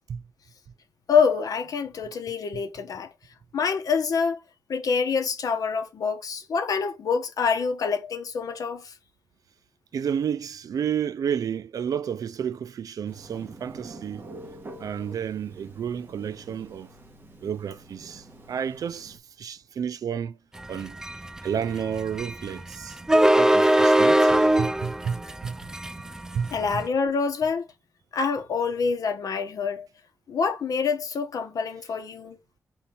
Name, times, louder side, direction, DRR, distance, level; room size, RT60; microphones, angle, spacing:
voice 1, 1.1-3.1 3.5-4.4 4.7-8.9 26.5-27.6 28.1-29.9 30.3-32.4, left 5 dB, 70° left, 1.2 m, -26 dB
voice 2, 9.9-14.2 14.8-16.9 17.4-20.4 20.7-21.0 21.4-23.0 23.4-25.2 25.4-25.6 26.3-26.8, right 8 dB, 70° right, 0.4 m, -31 dB
Telephone, 13.1-19.2, right 2 dB, 35° right, 1.4 m, -46 dB
sound 1, 20.6-26.9, right 1 dB, 10° right, 0.3 m, -21 dB
4.4 x 4.3 x 5.4 m
wide cardioid pair, 160°, 6 cm